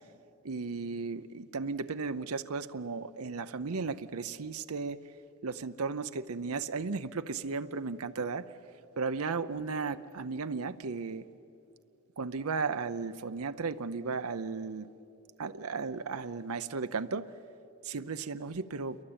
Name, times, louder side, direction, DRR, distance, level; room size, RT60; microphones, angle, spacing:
voice 1, 0.4-5.0 5.4-8.5 9.0-11.2 12.2-14.9 15.4-17.3 17.8-19.0, right 4 dB, 85° right, 10 dB, 0.7 m, -35 dB
29.0 x 23.0 x 8.8 m, 2.8 s
head